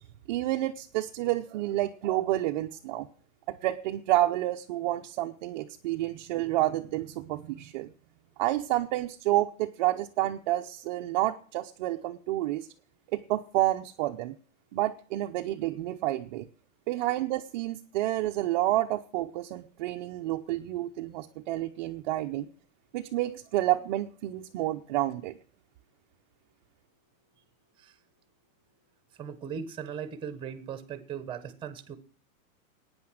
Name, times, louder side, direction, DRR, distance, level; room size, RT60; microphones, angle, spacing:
voice 1, 0.3-3.1 3.5-7.9 8.4-12.7 13.1-14.3 14.7-16.5 16.9-22.5 22.9-25.4, right 15 dB, 35° right, 3 dB, 0.7 m, -29 dB
voice 2, 29.2-32.0, right 7 dB, 10° right, 12 dB, 1.1 m, -38 dB
16.0 x 9.5 x 6.4 m, 0.42 s
supercardioid pair, 160°, 42 cm